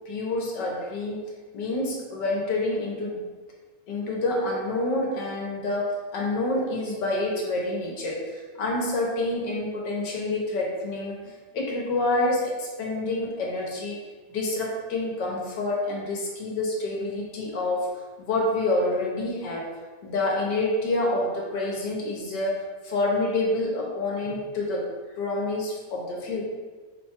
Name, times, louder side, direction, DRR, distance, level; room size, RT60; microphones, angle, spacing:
voice 1, 0.1-1.2 1.5-3.2 3.9-14.0 14.3-17.9 18.2-19.7 20.0-24.9 25.2-26.4, left 2 dB, 80° left, -2 dB, 1.5 m, -27 dB
4.8 x 2.2 x 4.3 m, 1.4 s
omnidirectional pair, 1.9 m